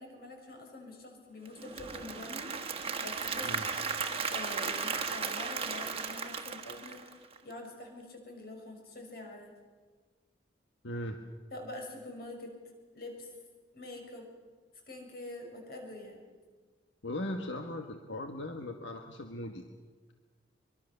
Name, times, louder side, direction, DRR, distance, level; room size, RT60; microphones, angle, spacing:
voice 1, 0.0-3.5 4.1-7.1 7.4-9.5 11.5-12.5 12.9-13.3 13.7-14.3 14.9-16.3, left 1 dB, 55° left, 2 dB, 6.3 m, -45 dB
Applause / Crowd, 1.5-7.5, right 5 dB, 30° right, 1.4 m, -35 dB
voice 2, 10.8-11.2 17.0-19.6, left 1 dB, 85° left, 4 dB, 1.6 m, -38 dB
24.5 x 24.0 x 6.9 m, 1.4 s
head